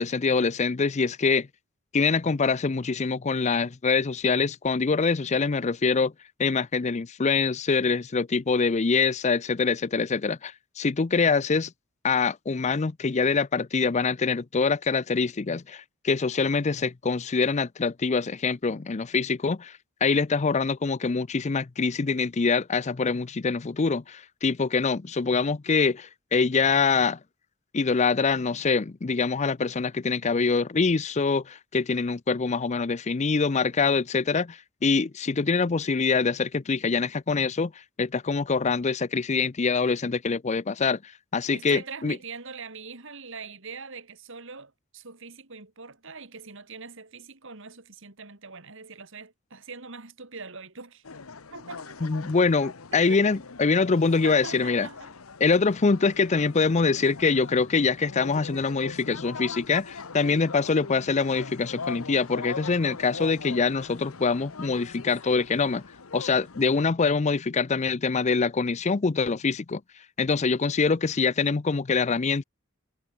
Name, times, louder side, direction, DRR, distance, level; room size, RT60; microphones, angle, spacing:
voice 1, 0.0-1.5 1.9-6.1 6.4-11.7 12.0-19.7 20.0-27.2 27.7-37.7 38.0-42.2 52.0-54.9 55.4-65.8 66.1-69.8 70.2-72.4, left 4 dB, 35° left, 0.5 m, -24 dB
voice 2, 41.5-51.0 51.5-52.0 52.9-53.4 54.2-55.1, right 4 dB, 65° right, 3.0 m, -42 dB
sound 1, 51.1-66.9, left 4 dB, 90° left, 1.2 m, -41 dB
head